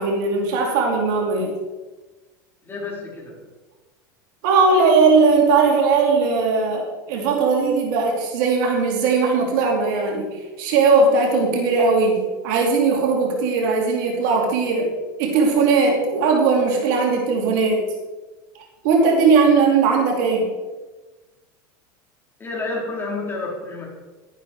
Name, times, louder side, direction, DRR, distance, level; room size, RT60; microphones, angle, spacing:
voice 1, 0.0-1.5 4.4-14.9 15.2-17.8 18.8-20.5, right 4 dB, 70° right, 0 dB, 2.6 m, -18 dB
voice 2, 2.6-3.4 22.4-23.9, left 3 dB, 20° left, -3 dB, 4.4 m, -29 dB
12.0 x 10.5 x 4.7 m, 1.2 s
supercardioid pair, 115°, 11 cm